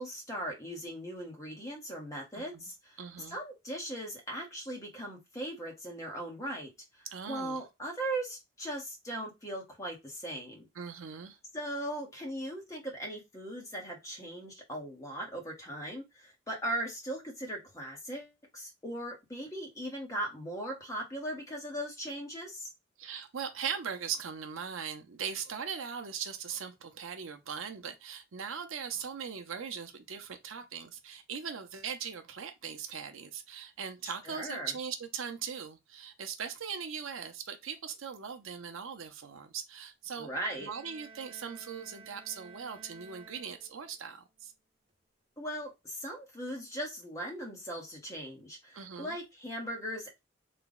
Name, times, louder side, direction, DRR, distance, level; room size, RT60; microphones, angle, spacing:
voice 1, 0.0-3.0 3.3-10.7 11.5-22.7 34.0-34.7 40.2-40.7 45.4-50.2, right 1 dB, 15° left, 1.0 m, -39 dB
voice 2, 3.0-3.4 7.1-7.6 10.8-11.4 23.0-40.3 40.6-44.5 48.7-49.2, right 7 dB, 80° right, 0.6 m, -40 dB
sound 1, 40.3-44.1, right 4 dB, 25° right, 0.5 m, -54 dB
3.4 x 2.2 x 3.8 m
head